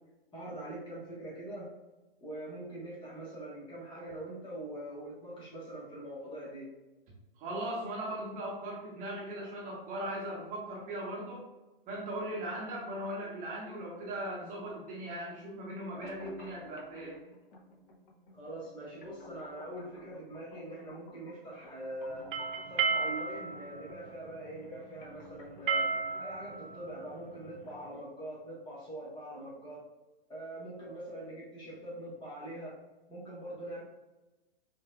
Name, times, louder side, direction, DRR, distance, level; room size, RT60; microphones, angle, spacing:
voice 1, 0.3-1.7 2.2-6.7 18.3-22.3 22.7-25.9 26.2-29.8 30.3-32.7 33.1-33.8, right 1 dB, 15° left, -5 dB, 1.5 m, -43 dB
voice 2, 7.4-11.4 11.9-17.2, right 1 dB, 25° right, -4 dB, 1.2 m, -38 dB
sound 1, 16.0-28.0, left 3 dB, 55° left, 1.1 m, -55 dB
sound 2, 22.1-27.9, right 5 dB, 60° right, 0.5 m, -34 dB
5.5 x 3.2 x 2.4 m, 1.1 s
figure-of-eight pair, 110°, 30 cm